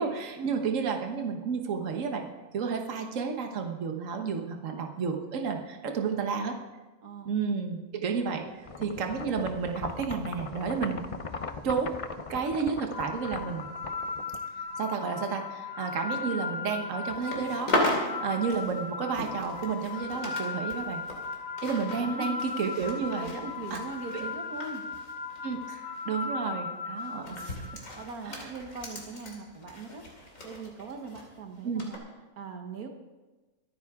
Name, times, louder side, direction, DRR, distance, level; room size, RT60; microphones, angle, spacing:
voice 1, 0.0-2.2 2.5-6.6 7.2-11.0 11.6-12.0 12.3-13.7 14.8-17.7 18.2-21.0 21.6-23.3 23.7-23.8 24.1-24.2 25.4-27.2 28.3-28.4 31.6-31.8, right 5 dB, 60° right, 3 dB, 1.6 m, -31 dB
voice 2, 7.0-7.3 21.9-22.4 23.2-24.8 27.2-27.7 27.9-30.0 30.4-32.0 32.4-32.9, right 4 dB, 85° right, 4 dB, 1.6 m, -41 dB
sound 1, 8.6-14.8, left 4 dB, 45° left, 0.4 m, -40 dB
sound 2, 12.9-28.0, left 4 dB, 30° left, 1.0 m, -37 dB
sound 3, 17.1-20.4 20.7-25.7 26.0-26.2 27.0-31.3 31.8-32.0, left 1 dB, 65° left, 3.0 m, -36 dB
25.5 x 9.4 x 3.6 m, 1.2 s
omnidirectional pair, 1.5 m